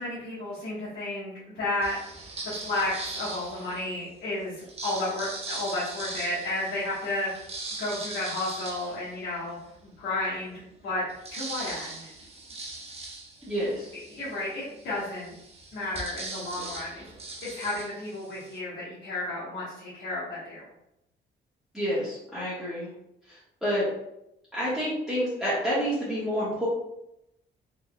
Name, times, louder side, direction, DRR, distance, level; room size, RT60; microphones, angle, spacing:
voice 1, 0.0-2.0 2.4-7.3 7.8-9.6 9.8-10.5 10.8-12.1 13.9-15.3 15.7-17.0 17.4-20.7, left 2 dB, 80° left, -9 dB, 1.3 m, -32 dB
sound 1, 1.8-4.0 4.6-9.7 10.2-10.3 10.6-18.6, right 2 dB, 30° right, 0.7 m, -40 dB
voice 2, 13.5-13.9 21.7-22.9 23.3-23.9 24.5-26.7, equal, ahead, -11 dB, 1.2 m, -29 dB
3.8 x 2.9 x 2.2 m, 0.84 s
cardioid pair, 90°, 20 cm